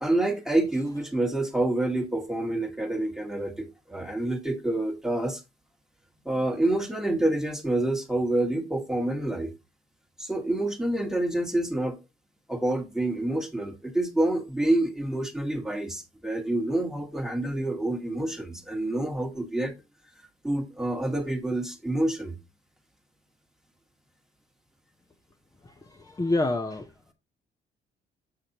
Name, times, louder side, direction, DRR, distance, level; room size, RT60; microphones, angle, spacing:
voice 1, 0.0-5.4 6.2-9.5 10.2-12.0 12.5-19.7 20.4-22.4, right 1 dB, ahead, 1.5 m, -27 dB
voice 2, 25.6-26.9, left 2 dB, 20° left, 0.8 m, -28 dB
6.7 x 5.9 x 2.9 m
cardioid pair, 90°, 20 cm